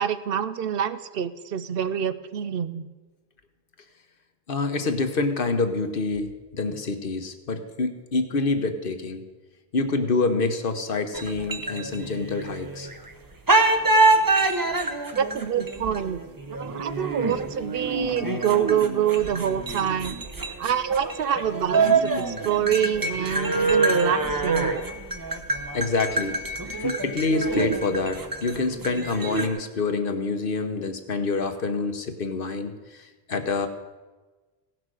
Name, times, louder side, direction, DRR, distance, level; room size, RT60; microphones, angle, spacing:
voice 1, 0.0-2.9 15.2-16.2 16.5-20.2 20.6-24.7, right 9 dB, 70° right, 13 dB, 0.8 m, -26 dB
voice 2, 4.5-9.2 9.7-12.9 25.7-26.4 26.8-33.7, left 3 dB, 60° left, 8 dB, 1.2 m, -27 dB
sound 1, 11.1-13.1 13.5-29.5, right 3 dB, 20° right, 0.8 m, -26 dB
17.0 x 6.1 x 6.3 m, 1.2 s
omnidirectional pair, 1.0 m